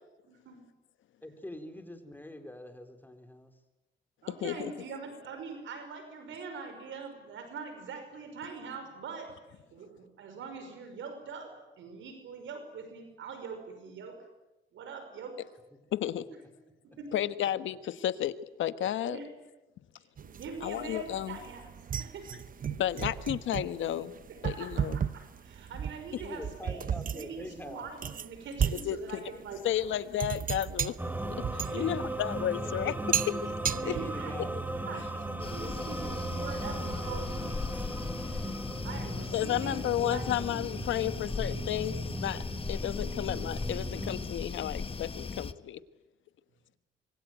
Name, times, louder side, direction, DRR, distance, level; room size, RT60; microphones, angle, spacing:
voice 1, 0.3-0.6 4.2-14.2 14.7-15.4 16.8-17.1 19.0-19.3 20.0-22.3 22.8-22.9 24.3-26.8 27.1-30.0 31.6-31.9 33.7-35.1 35.5-38.5 38.8-40.6, right 5 dB, 75° right, 7 dB, 5.7 m, -43 dB
voice 2, 1.2-3.5 15.7-15.8 16.3-16.4 26.1-27.9 32.6-33.6 33.8-36.4, left 1 dB, 10° left, 6 dB, 4.3 m, -45 dB
voice 3, 15.9-16.2 17.1-18.3 18.6-19.2 20.6-21.4 22.8-24.1 24.4-25.0 28.8-29.3 29.6-31.0 31.5-32.9 33.8-33.9 34.4-34.5 39.3-41.9 42.2-42.4 42.7-45.8, left 11 dB, 75° left, 12 dB, 1.4 m, -32 dB
sound 1, 20.2-35.4, right 8 dB, 45° right, 0.9 m, -36 dB
sound 2, 31.0-44.2, right 1 dB, 10° right, 3.1 m, -37 dB
sound 3, 35.4-45.5, left 4 dB, 30° left, 1.2 m, -38 dB
25.5 x 23.5 x 9.4 m, 1.0 s
cardioid pair, 90°, 20 cm